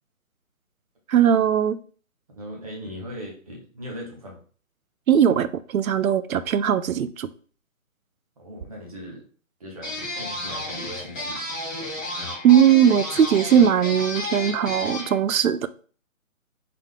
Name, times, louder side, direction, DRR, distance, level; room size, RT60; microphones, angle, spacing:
voice 1, 1.1-1.8 5.1-7.3 12.4-15.7, right 9 dB, 75° right, 0.5 m, -19 dB
voice 2, 2.3-4.4 8.4-9.2 9.6-11.4, equal, 25° right, 1.0 m, -39 dB
sound 1, 9.8-15.1, left 1 dB, 5° left, 0.8 m, -32 dB
3.8 x 3.6 x 3.2 m
hypercardioid pair, 165°, 42 cm